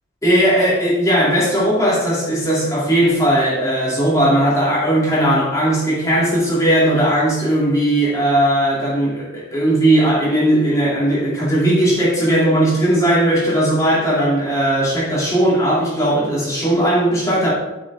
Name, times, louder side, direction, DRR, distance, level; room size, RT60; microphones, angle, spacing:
voice 1, 0.2-17.5, right 1 dB, 15° left, -8 dB, 2.8 m, -17 dB
8.8 x 6.3 x 3.6 m, 1.0 s
head